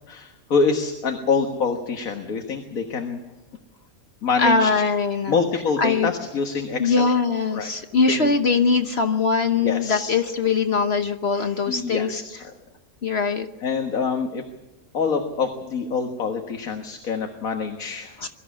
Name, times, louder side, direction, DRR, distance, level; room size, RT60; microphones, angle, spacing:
voice 1, 0.1-3.2 4.2-4.7 5.3-7.1 7.5-7.7 8.1-8.3 9.5-10.1 11.7-12.2 13.6-14.4 14.9-18.2, left 5 dB, 70° left, 4 dB, 1.9 m, -25 dB
voice 2, 4.4-5.4 5.8-6.1 6.8-12.2 13.0-13.5 18.2-18.3, left 4 dB, 50° left, 7 dB, 1.2 m, -21 dB
23.0 x 14.0 x 8.5 m, 1.1 s
omnidirectional pair, 1.5 m